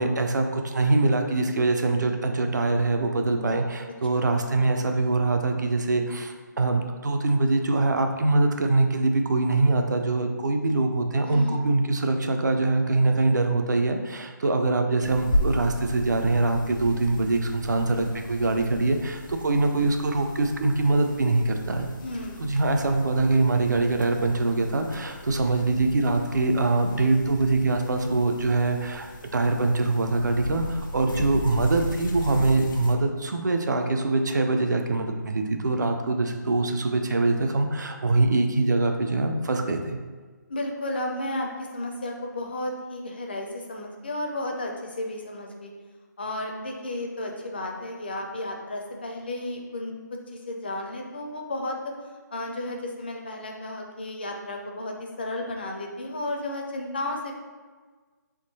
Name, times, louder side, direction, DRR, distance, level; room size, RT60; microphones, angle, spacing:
voice 1, 0.0-21.9 22.4-29.1 29.3-40.0, right 2 dB, 65° right, 5 dB, 0.5 m, -23 dB
voice 2, 11.2-11.6 22.0-22.5 40.5-45.7 46.2-49.9 50.3-51.9 52.3-57.3, left 1 dB, 30° left, 1 dB, 0.4 m, -33 dB
sound 1, 15.0-33.0, equal, 90° left, 0.8 m, -35 dB
3.6 x 3.0 x 4.0 m, 1.4 s
hypercardioid pair, 175°, 10 cm